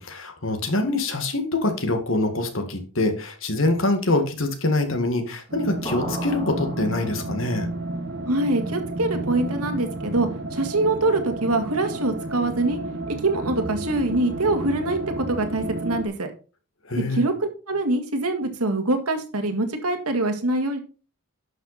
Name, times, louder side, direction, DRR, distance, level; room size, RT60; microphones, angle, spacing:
voice 1, 0.0-7.7 16.9-17.2, left 2 dB, 65° left, 7 dB, 1.9 m, -24 dB
sound 1, 5.5-16.1, right 2 dB, 55° right, 1.3 m, -31 dB
sound 2, 5.9-7.6, left 1 dB, 20° left, 2.3 m, -36 dB
voice 2, 8.3-12.8 13.1-16.3 17.1-20.8, right 2 dB, 90° right, 6 dB, 1.9 m, -24 dB
11.5 x 5.9 x 4.2 m, 0.34 s
head